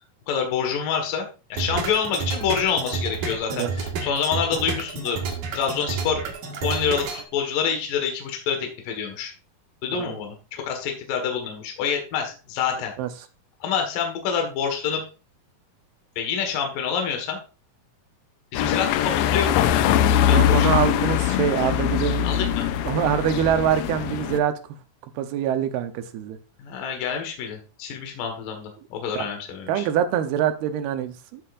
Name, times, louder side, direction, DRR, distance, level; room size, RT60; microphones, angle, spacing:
voice 1, 0.3-5.2 5.5-6.2 6.6-9.3 9.8-12.9 13.6-15.0 16.2-17.4 18.5-19.9 20.3-20.7 22.2-22.7 26.6-29.9, left 7 dB, 65° left, 4 dB, 3.1 m, -27 dB
sound 1, 1.6-7.2, right 5 dB, 60° right, 2.9 m, -30 dB
sound 2, 18.5-24.4, left 10 dB, 80° left, 2.4 m, -22 dB
voice 2, 20.3-22.3 22.9-24.5 25.2-26.4 29.2-29.3 29.7-31.4, right 9 dB, 80° right, 9 dB, 2.8 m, -24 dB
13.5 x 7.6 x 2.5 m, 0.33 s
omnidirectional pair, 4.5 m